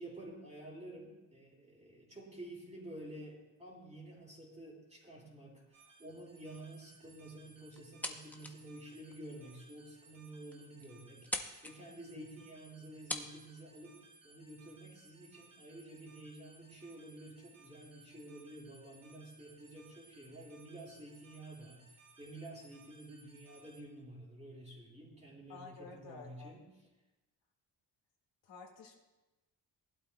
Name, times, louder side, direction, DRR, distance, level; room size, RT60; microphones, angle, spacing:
voice 1, 0.0-14.0 14.2-26.7, right 1 dB, 15° right, -4 dB, 3.4 m, -50 dB
sound 1, 5.7-23.8, right 3 dB, 50° right, 3.8 m, -62 dB
sound 2, 7.7-8.6 9.1-9.2 9.8-9.9 10.2-10.3 10.5-10.9 11.2-11.7 12.7-12.8 13.1-13.3, left 1 dB, 5° left, 0.7 m, -40 dB
voice 2, 25.5-26.6 28.4-29.0, left 4 dB, 85° left, 0 dB, 2.0 m, -51 dB
20.0 x 12.0 x 2.3 m, 1.1 s
wide cardioid pair, 155°, 43 cm